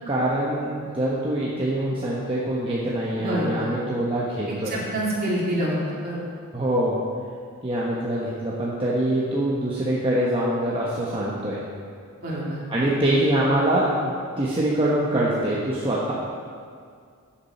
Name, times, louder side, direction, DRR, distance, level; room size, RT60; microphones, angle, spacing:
voice 1, 0.1-4.8 6.5-7.0 7.6-11.6 12.7-16.1, right 1 dB, 25° right, -6 dB, 1.1 m, -24 dB
voice 2, 3.2-3.7 4.6-6.2 12.2-12.6, equal, 45° right, -5 dB, 2.6 m, -27 dB
13.5 x 7.3 x 4.3 m, 2.2 s
head